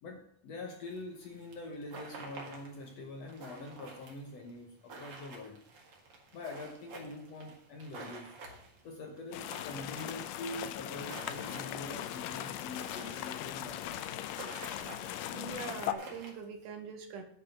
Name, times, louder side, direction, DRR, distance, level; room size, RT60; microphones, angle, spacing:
voice 1, 0.0-5.6 6.3-8.4 8.8-14.0, left 2 dB, 60° left, 1.9 m, -44 dB
sound 1, 0.9-16.3, right 3 dB, 45° right, 2.5 m, -51 dB
sound 2, 9.3-15.9, left 12 dB, 85° left, 2.3 m, -39 dB
voice 2, 15.3-17.2, right 5 dB, 70° right, 2.6 m, -43 dB
10.0 x 5.2 x 7.1 m
omnidirectional pair, 4.1 m